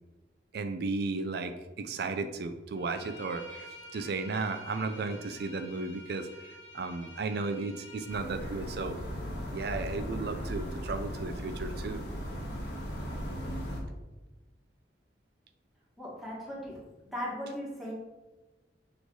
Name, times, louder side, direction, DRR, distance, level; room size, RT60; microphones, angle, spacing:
voice 1, 0.5-9.0 9.5-12.0, right 3 dB, 65° right, 9 dB, 0.5 m, -35 dB
Bowed string instrument, 2.7-8.2, equal, 85° left, 1.1 m, -49 dB
sound 1, 8.1-13.8, equal, 70° left, 1.6 m, -37 dB
voice 2, 16.0-16.8 17.1-17.9, equal, ahead, -5 dB, 1.7 m, -37 dB
6.5 x 3.3 x 4.6 m, 1.1 s
head